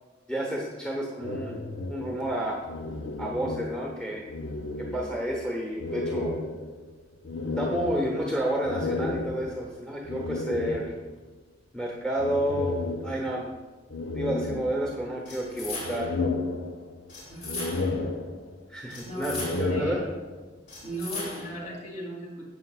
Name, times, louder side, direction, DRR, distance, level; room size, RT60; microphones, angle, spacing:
voice 1, 0.3-1.6 1.9-2.6 3.2-4.3 4.8-6.4 7.5-10.9 11.7-13.5 14.1-16.1 18.7-20.0, right 1 dB, 5° left, -2 dB, 1.1 m, -30 dB
sound 1, 1.2-4.0 4.3-5.4 5.8-11.2 12.2-13.5 13.9-15.2 15.6-17.1 17.4-18.7 19.2-20.5, left 3 dB, 85° left, 0.7 m, -33 dB
sound 2, 15.3-16.2 17.1-18.1 18.9-19.9 20.7-21.7, left 2 dB, 55° left, 2.9 m, -38 dB
voice 2, 17.3-17.6 19.0-20.0 20.8-22.5, right 1 dB, 40° left, -4 dB, 2.9 m, -37 dB
12.0 x 7.8 x 2.5 m, 1.2 s
head